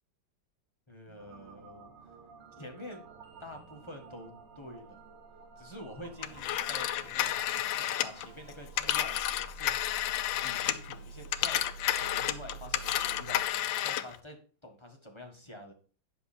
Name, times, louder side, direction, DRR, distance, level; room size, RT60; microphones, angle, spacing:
voice 1, 0.9-1.9 2.6-3.1 3.4-5.0 5.6-9.2 9.5-9.8 10.4-13.4 13.8-15.7, left 1 dB, 15° left, 2 dB, 1.1 m, -47 dB
sound 1, 0.9-10.0, right 3 dB, 30° right, 1.4 m, -57 dB
sound 2, 1.2-13.5, right 4 dB, 60° right, 0.9 m, -50 dB
Telephone, 6.2-10.9 11.2-14.2, left 12 dB, 80° left, 1.4 m, -31 dB
9.6 x 6.4 x 4.3 m, 0.40 s
omnidirectional pair, 2.1 m